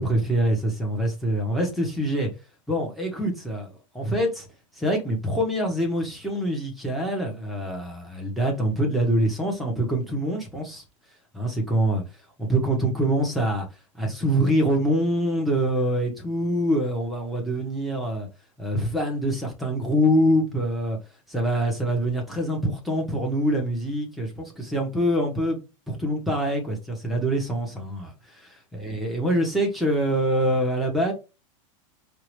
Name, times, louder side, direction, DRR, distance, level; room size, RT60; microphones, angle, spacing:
voice 1, 0.0-2.3 2.7-4.5 4.8-10.8 11.3-12.0 12.4-13.7 14.0-18.3 18.6-21.0 21.3-25.6 25.9-31.1, equal, ahead, 1.1 m, -25 dB
4.7 x 2.5 x 3.2 m
supercardioid pair, 160°, 18 cm